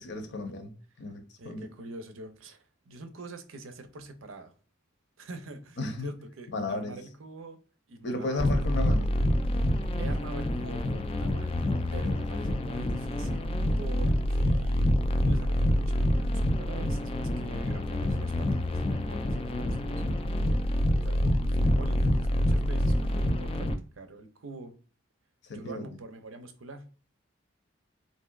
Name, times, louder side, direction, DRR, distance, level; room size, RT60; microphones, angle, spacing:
voice 1, 0.0-1.6 5.8-6.1 6.5-7.0 8.0-9.1 19.9-20.2 25.4-26.0, left 2 dB, 60° left, 0.7 m, -34 dB
voice 2, 1.4-4.5 5.2-7.6 7.9-8.5 8.8-8.9 10.0-11.5 11.9-20.0 20.9-23.7 23.9-24.7 25.5-26.9, right 2 dB, 80° right, 0.6 m, -45 dB
sound 1, 8.4-23.7, left 1 dB, 30° left, 0.3 m, -27 dB
3.3 x 2.7 x 2.3 m
head